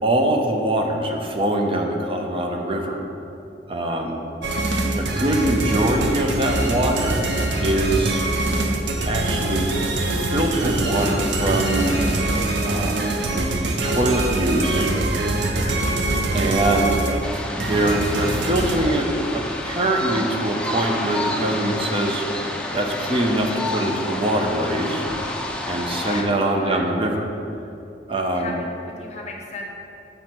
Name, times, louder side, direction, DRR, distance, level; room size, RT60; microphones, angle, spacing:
voice 1, 0.0-3.0 3.7-4.2 5.0-7.2 7.6-8.2 9.1-12.0 12.6-13.5 13.8-14.9 16.3-17.2 17.5-22.2 22.7-25.0 25.6-27.3 28.1-28.6, right 1 dB, 30° right, 2 dB, 0.7 m, -23 dB
sound 1, 4.4-18.8, right 2 dB, 80° right, 0.7 m, -23 dB
voice 2, 15.6-16.0 26.0-26.8 28.3-29.7, left 2 dB, 40° left, 1 dB, 0.8 m, -36 dB
sound 2, 17.2-26.2, left 1 dB, 5° left, 0.6 m, -29 dB
7.9 x 5.4 x 4.4 m, 2.7 s
head